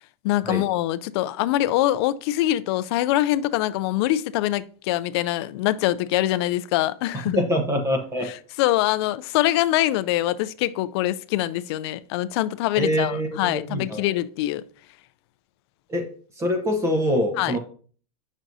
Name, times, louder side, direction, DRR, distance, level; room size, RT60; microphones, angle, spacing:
voice 1, 0.2-7.4 8.2-14.6 17.4-17.5, left 15 dB, 45° left, 0.4 m, -24 dB
voice 2, 7.3-8.3 12.8-14.0 15.9-16.0 16.4-17.6, equal, 15° right, 1.0 m, -24 dB
8.7 x 6.2 x 2.7 m
supercardioid pair, 160°, 19 cm